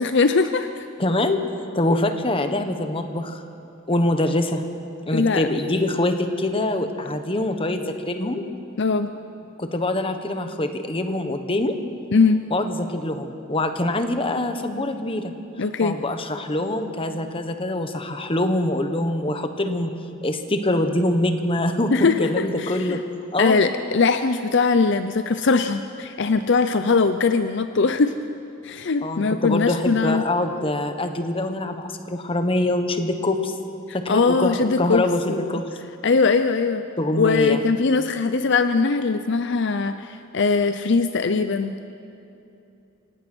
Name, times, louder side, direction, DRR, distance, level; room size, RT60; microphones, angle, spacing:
voice 1, 0.0-0.9 5.1-5.5 8.8-9.1 12.1-12.4 15.6-15.9 21.9-23.0 23.4-28.1 28.6-30.2 34.1-35.0 35.3-35.6 36.0-36.8 37.2-41.7, left 4 dB, 60° left, 10 dB, 0.6 m, -21 dB
voice 2, 1.0-3.4 3.9-4.6 5.0-8.4 9.6-11.8 12.5-15.3 15.8-19.9 20.2-21.9 22.2-23.0 23.3-23.7 29.0-33.5 33.9-35.7 37.0-37.6, left 1 dB, 25° left, 7 dB, 1.3 m, -24 dB
26.5 x 17.5 x 6.2 m, 2.8 s
head